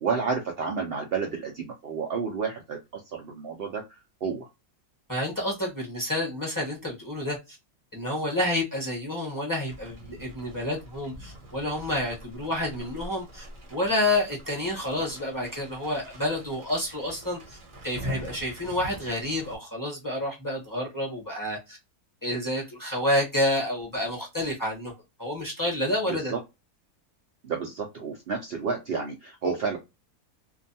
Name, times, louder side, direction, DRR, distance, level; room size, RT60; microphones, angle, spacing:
voice 1, 0.0-3.8 4.2-4.5 26.1-26.4 27.4-29.8, right 5 dB, 85° right, 0.5 m, -30 dB
voice 2, 5.1-7.6 7.9-13.4 13.7-17.6 17.8-21.8 22.2-24.9 25.2-26.3, left 1 dB, 15° left, 0.8 m, -29 dB
sound 1, 9.7-19.6, right 1 dB, 45° right, 0.7 m, -43 dB
2.6 x 2.2 x 2.6 m
omnidirectional pair, 1.6 m